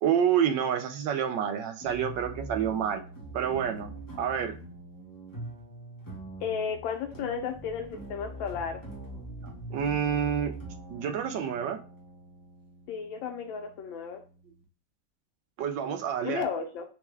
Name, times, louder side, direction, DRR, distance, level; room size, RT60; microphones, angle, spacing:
voice 1, 0.0-3.0 3.3-3.9 4.2-4.6 9.7-10.6 10.9-11.8 15.6-16.4, right 8 dB, 75° right, 8 dB, 1.2 m, -28 dB
sound 1, 1.8-14.6, right 2 dB, 25° left, 0.4 m, -44 dB
voice 2, 6.4-8.8 12.9-14.2 16.2-16.8, left 6 dB, 85° left, 4 dB, 1.4 m, -33 dB
4.3 x 2.2 x 3.2 m, 0.37 s
omnidirectional pair, 2.1 m